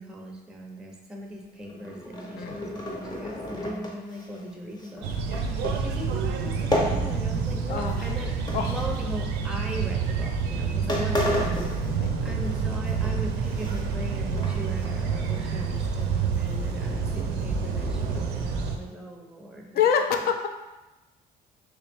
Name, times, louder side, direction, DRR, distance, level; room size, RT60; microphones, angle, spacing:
voice 1, 0.0-5.1 5.4-8.3 8.6-11.5 11.8-19.8 20.2-20.3, right 1 dB, 5° right, 0 dB, 0.5 m, -39 dB
sound 1, 1.5-7.6 7.9-9.4 10.0-10.2 10.6-10.7 10.9-12.6 12.9-14.1 14.4-15.0 15.3-15.4 15.8-18.2, left 1 dB, 25° left, 0.8 m, -33 dB
sound 2, 5.0-18.8, right 5 dB, 90° right, 0.5 m, -28 dB
voice 2, 19.7-20.5, left 7 dB, 65° left, 5 dB, 0.5 m, -25 dB
3.2 x 2.9 x 3.3 m, 1.1 s
cardioid pair, 110°, 17 cm